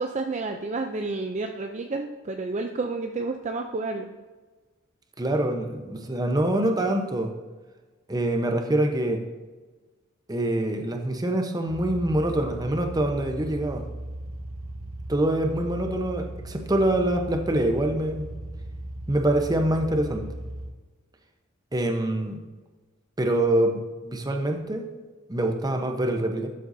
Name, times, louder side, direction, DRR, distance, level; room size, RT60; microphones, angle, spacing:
voice 1, 0.0-4.1, right 3 dB, 35° right, 4 dB, 0.5 m, -30 dB
voice 2, 5.2-7.3 8.1-9.2 10.3-13.9 15.1-18.2 19.1-20.3 21.7-22.4 23.2-24.9 25.3-26.5, right 1 dB, 20° right, 4 dB, 0.9 m, -25 dB
sound 1, 11.7-20.7, right 1 dB, 75° right, 1.2 m, -37 dB
12.5 x 7.6 x 2.7 m, 1.3 s
head